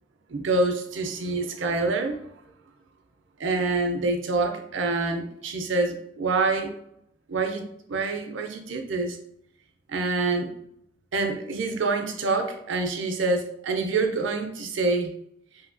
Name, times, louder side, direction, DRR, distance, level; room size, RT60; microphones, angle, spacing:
voice 1, 0.3-2.2 3.4-6.7 7.3-7.6 7.9-9.2 9.9-10.5 11.1-15.1, right 3 dB, 65° right, 5 dB, 0.5 m, -26 dB
2.7 x 2.7 x 2.6 m, 0.73 s
head